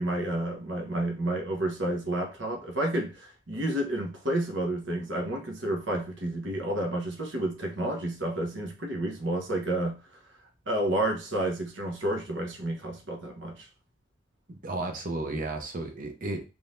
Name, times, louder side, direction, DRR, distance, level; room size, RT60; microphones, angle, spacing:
voice 1, 0.0-10.0 10.7-13.7, right 1 dB, 70° right, 1.1 m, -30 dB
voice 2, 14.5-16.4, right 2 dB, 45° right, 0.8 m, -33 dB
3.9 x 3.3 x 2.6 m
head